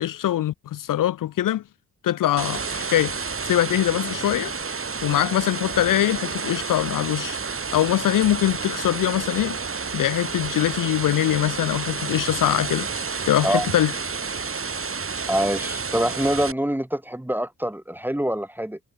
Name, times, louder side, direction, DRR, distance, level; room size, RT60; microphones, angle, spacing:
voice 1, 0.0-1.6 2.0-3.1 3.4-4.5 5.0-7.4 7.7-9.6 9.9-12.9 13.3-13.9, left 12 dB, 65° left, 0.5 m, -23 dB
sound 1, 2.4-16.5, right 5 dB, 40° right, 2.1 m, -30 dB
voice 2, 15.3-18.8, equal, 5° right, 1.0 m, -25 dB
cardioid pair, 65°, 35 cm